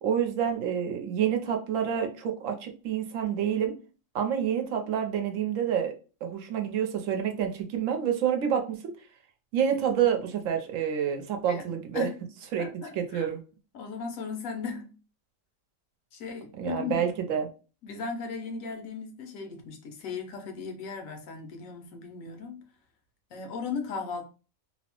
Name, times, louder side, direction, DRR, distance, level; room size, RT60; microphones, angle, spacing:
voice 1, 0.0-3.7 4.1-5.9 6.2-8.9 9.5-12.1 12.5-12.7 13.0-13.4 16.6-17.5, right 8 dB, 75° right, 1.0 m, -28 dB
voice 2, 11.5-12.2 12.6-13.3 13.7-15.0 16.1-17.1 17.8-22.6 23.3-24.2, left 5 dB, 85° left, 1.1 m, -37 dB
2.8 x 2.0 x 2.9 m
omnidirectional pair, 1.4 m